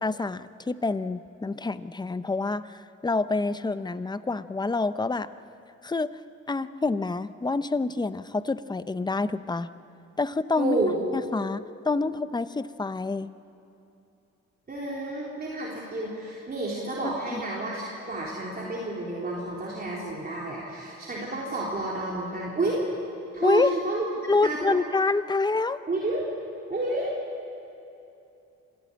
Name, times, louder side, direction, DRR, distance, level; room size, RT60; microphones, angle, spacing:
voice 1, 0.0-5.3 5.8-6.1 6.5-9.7 10.2-10.8 11.1-13.3 17.0-17.4 23.4-23.7 24.3-25.8, left 3 dB, 15° left, 14 dB, 0.7 m, -27 dB
voice 2, 10.6-11.0 14.7-22.8 23.3-24.1 24.4-24.8 25.9-26.2 26.7-27.1, right 2 dB, 30° right, -5 dB, 3.8 m, -30 dB
26.5 x 14.5 x 8.8 m, 2.8 s
cardioid pair, 90°, 30 cm